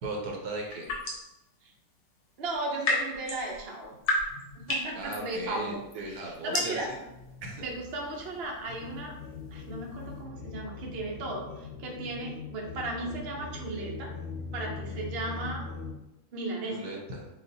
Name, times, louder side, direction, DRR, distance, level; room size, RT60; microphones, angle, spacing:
voice 1, 0.0-0.9 4.9-6.8 7.4-7.6 16.7-17.3, right 2 dB, 80° right, 0 dB, 1.4 m, -37 dB
sound 1, 0.6-1.4 2.4-10.2, left 2 dB, 70° left, 1.4 m, -34 dB
voice 2, 2.4-3.9 4.6-6.9 7.6-9.1 9.5-14.1 14.5-15.7 16.3-16.8, right 2 dB, 50° right, -1 dB, 0.9 m, -36 dB
sound 2, 7.1-15.9, left 2 dB, 50° left, 0.4 m, -44 dB
sound 3, 8.7-16.1, left 7 dB, 90° left, 1.1 m, -44 dB
6.2 x 2.5 x 2.7 m, 0.94 s
omnidirectional pair, 1.6 m